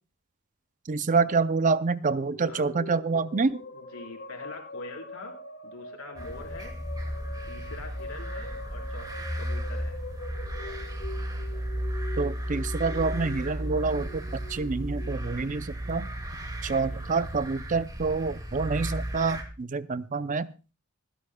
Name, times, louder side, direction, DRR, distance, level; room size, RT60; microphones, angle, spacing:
voice 1, 0.9-3.6 12.2-16.1 16.6-20.5, right 4 dB, 35° right, 14 dB, 0.5 m, -27 dB
sound 1, 1.9-16.4, left 3 dB, 50° left, 3.5 m, -44 dB
voice 2, 3.7-5.4 5.6-6.7 7.5-10.0 16.9-17.0, left 2 dB, 80° left, 2 dB, 4.3 m, -44 dB
sound 2, 6.2-19.4, right 1 dB, 20° right, 2.1 m, -34 dB
26.0 x 11.5 x 2.3 m, 0.31 s
head